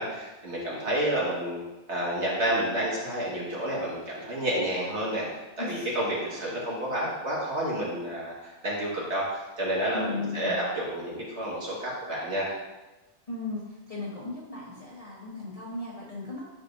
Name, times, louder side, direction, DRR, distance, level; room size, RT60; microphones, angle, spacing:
voice 1, 0.0-1.6 1.9-5.3 5.6-12.5, right 1 dB, 65° right, -5 dB, 2.2 m, -30 dB
voice 2, 5.6-5.9 9.9-10.6 13.3-16.5, left 3 dB, 30° left, -6 dB, 1.2 m, -36 dB
9.7 x 5.0 x 2.7 m, 1.1 s
omnidirectional pair, 1.2 m